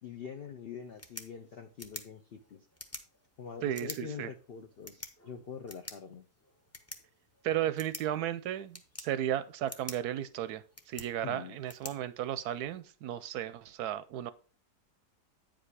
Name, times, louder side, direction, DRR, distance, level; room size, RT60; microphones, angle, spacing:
voice 1, 0.0-2.7 3.4-6.3 11.2-11.6, left 6 dB, 85° left, 0.5 m, -44 dB
sound 1, 0.8-12.8, left 1 dB, 25° left, 0.3 m, -49 dB
voice 2, 3.6-4.3 7.4-14.3, right 11 dB, 70° right, 1.0 m, -34 dB
9.0 x 5.2 x 4.8 m
omnidirectional pair, 1.9 m